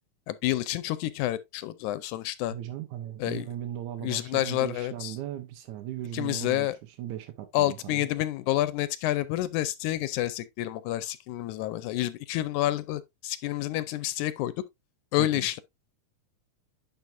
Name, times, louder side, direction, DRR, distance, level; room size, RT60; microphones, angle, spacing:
voice 1, 0.3-2.6 3.2-3.5 4.0-5.2 6.1-6.8 7.5-14.5 15.1-15.6, left 15 dB, 85° left, 2.0 m, -29 dB
voice 2, 2.5-8.1 15.2-15.5, right 12 dB, 80° right, 2.2 m, -37 dB
10.5 x 4.6 x 2.5 m
omnidirectional pair, 3.5 m